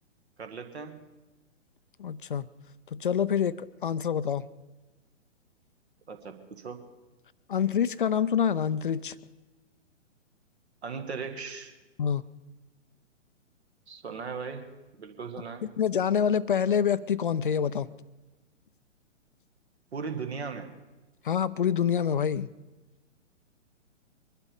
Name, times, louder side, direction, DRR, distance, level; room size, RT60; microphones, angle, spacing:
voice 1, 0.4-1.1 6.1-6.8 10.8-11.7 13.9-14.7 15.0-15.6 19.9-20.7, right 5 dB, 55° right, 7 dB, 1.8 m, -37 dB
voice 2, 2.0-2.5 2.9-4.5 7.5-9.1 12.0-12.2 15.8-17.9 21.2-22.5, left 8 dB, 45° left, 16 dB, 0.5 m, -26 dB
23.0 x 11.5 x 5.2 m, 1.1 s
figure-of-eight pair, 125°, 38 cm